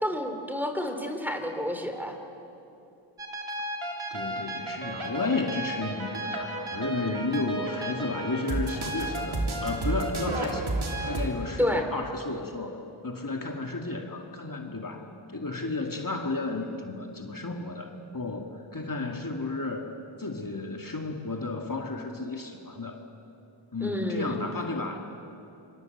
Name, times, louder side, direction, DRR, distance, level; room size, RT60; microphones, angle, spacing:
voice 1, 0.0-2.2 11.6-11.9 23.8-24.4, equal, 5° right, 4 dB, 3.1 m, -29 dB
sound 1, 3.2-11.3, right 2 dB, 85° right, 3.3 m, -32 dB
voice 2, 4.1-10.8 11.1-12.8 13.0-19.9 20.2-23.0 23.7-25.0, left 3 dB, 45° left, 2 dB, 2.3 m, -33 dB
27.0 x 26.0 x 8.1 m, 2.7 s
wide cardioid pair, 65°, 48 cm